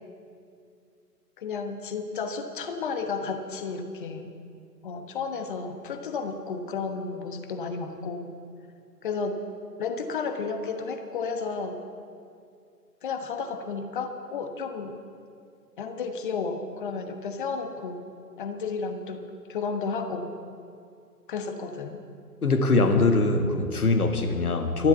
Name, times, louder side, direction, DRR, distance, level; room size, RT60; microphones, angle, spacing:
voice 1, 1.4-4.3 4.8-8.3 9.0-9.4 9.8-11.8 13.0-15.0 15.8-18.0 18.4-20.3 21.3-22.0, left 4 dB, 30° left, 7 dB, 1.2 m, -32 dB
voice 2, 22.4-24.9, left 3 dB, 65° left, 6 dB, 1.9 m, -22 dB
13.0 x 12.0 x 8.2 m, 2.4 s
figure-of-eight pair, 135°, 49 cm